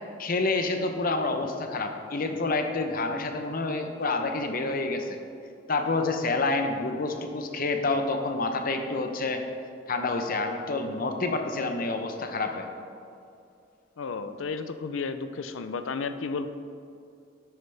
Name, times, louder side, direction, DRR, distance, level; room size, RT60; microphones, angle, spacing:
voice 1, 0.2-5.2 5.7-9.4 9.9-12.7, left 3 dB, 50° left, 5 dB, 0.8 m, -28 dB
voice 2, 14.0-16.5, left 4 dB, 90° left, 10 dB, 0.5 m, -33 dB
10.5 x 8.0 x 3.4 m, 2.5 s
head